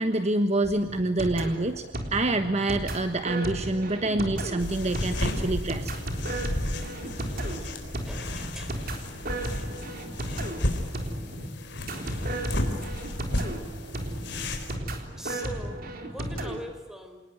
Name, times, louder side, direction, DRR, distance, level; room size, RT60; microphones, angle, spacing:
voice 1, 0.0-5.9, right 2 dB, 35° right, 8 dB, 1.3 m, -27 dB
sound 1, 0.6-16.6, right 1 dB, 50° right, 3.7 m, -34 dB
sound 2, 4.6-14.8, left 1 dB, 65° left, 4.1 m, -33 dB
voice 2, 8.0-8.7 9.6-9.7 15.2-15.8 16.1-17.2, equal, 5° right, 6 dB, 4.3 m, -41 dB
28.0 x 19.5 x 9.3 m, 1.2 s
head